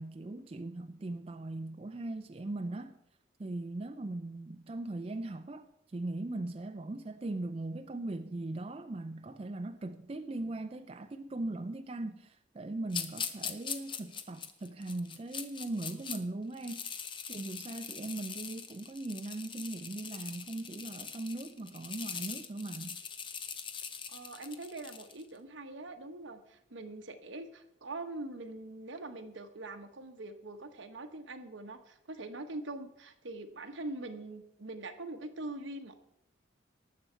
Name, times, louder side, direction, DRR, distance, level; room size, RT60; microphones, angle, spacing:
voice 1, 0.0-3.0 3.4-16.9 17.3-23.0, right 2 dB, 30° right, 0.4 m, -39 dB
sound 1, 12.9-16.2 16.5-25.2, left 6 dB, 25° left, 0.7 m, -42 dB
voice 2, 24.1-35.9, right 2 dB, 75° right, 1.1 m, -43 dB
19.0 x 7.0 x 4.4 m
head